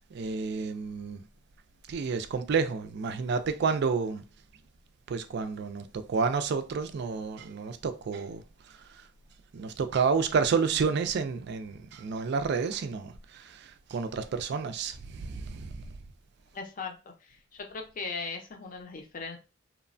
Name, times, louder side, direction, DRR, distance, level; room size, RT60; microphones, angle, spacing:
voice 1, 0.1-1.2 1.9-4.2 5.1-9.1 9.5-15.9, right 5 dB, 55° right, 0.3 m, -30 dB
voice 2, 16.5-19.4, left 4 dB, 45° left, 0.5 m, -39 dB
3.0 x 2.1 x 2.5 m
head